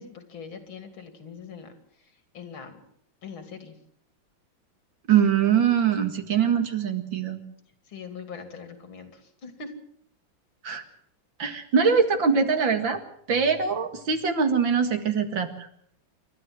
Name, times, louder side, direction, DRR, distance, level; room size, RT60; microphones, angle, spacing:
voice 1, 0.0-1.7 2.3-2.8 3.2-3.7 7.9-9.7, left 5 dB, 80° left, 8 dB, 3.4 m, -42 dB
voice 2, 5.1-7.4 10.6-10.8 11.4-13.0 13.3-15.7, right 6 dB, 70° right, 7 dB, 2.7 m, -23 dB
28.0 x 13.0 x 7.7 m, 0.68 s
omnidirectional pair, 2.2 m